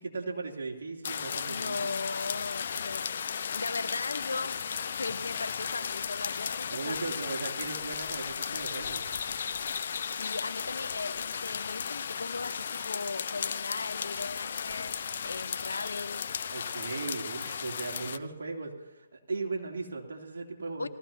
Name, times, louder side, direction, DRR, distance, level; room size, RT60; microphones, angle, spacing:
voice 1, 0.0-2.0 6.7-9.1 16.5-20.9, right 3 dB, 70° right, 0 dB, 3.0 m, -37 dB
sound 1, 1.0-18.2, left 7 dB, 60° left, 0.6 m, -35 dB
voice 2, 1.5-3.2 3.5-4.6 4.9-7.2 10.1-16.3 20.8-20.9, left 3 dB, 85° left, 11 dB, 1.0 m, -38 dB
20.0 x 14.5 x 2.8 m, 1.1 s
hypercardioid pair, 145°, 0 cm